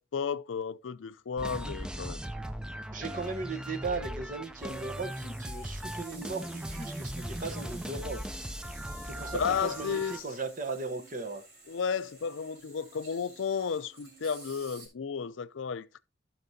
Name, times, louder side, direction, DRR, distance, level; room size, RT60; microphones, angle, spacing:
voice 1, 0.0-2.2 9.3-10.2 11.7-16.0, left 6 dB, 90° left, 0.5 m, -33 dB
sound 1, 1.4-10.2, equal, 5° right, 0.4 m, -38 dB
voice 2, 2.9-8.2 9.1-11.4, right 3 dB, 45° right, 1.0 m, -37 dB
sound 2, 4.6-14.9, right 2 dB, 65° right, 4.5 m, -51 dB
14.5 x 6.0 x 2.7 m
head